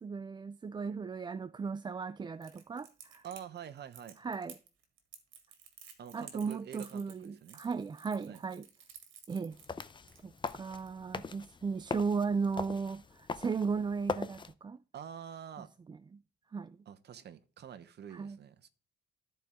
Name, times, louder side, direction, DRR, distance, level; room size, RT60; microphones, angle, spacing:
voice 1, 0.0-3.2 4.2-4.6 6.1-8.7 9.3-9.6 10.2-14.8 15.6-16.2 16.5-16.8 18.1-18.4, right 5 dB, 25° right, 0.3 m, -36 dB
Crackle, 2.4-10.9, right 8 dB, 80° right, 1.8 m, -54 dB
voice 2, 3.2-4.2 6.0-7.6 8.3-8.4 14.9-15.7 16.9-18.7, right 9 dB, 60° right, 1.0 m, -47 dB
sound 1, 9.5-14.5, left 5 dB, 25° left, 0.6 m, -41 dB
13.5 x 4.5 x 3.6 m
cardioid pair, 90°, 20 cm